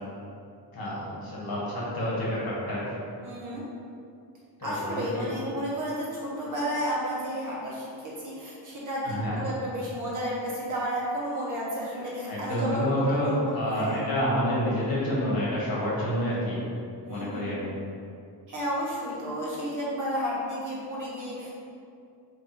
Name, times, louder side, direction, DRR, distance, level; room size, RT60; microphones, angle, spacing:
voice 1, 0.7-2.8 4.6-5.3 9.0-9.4 12.3-16.7 17.1-17.7, equal, 55° left, -7 dB, 1.1 m, -28 dB
voice 2, 3.2-3.6 4.6-14.1 17.0-17.5 18.5-21.5, equal, 45° right, -6 dB, 1.0 m, -32 dB
3.2 x 2.6 x 4.4 m, 2.4 s
wide cardioid pair, 170°, 42 cm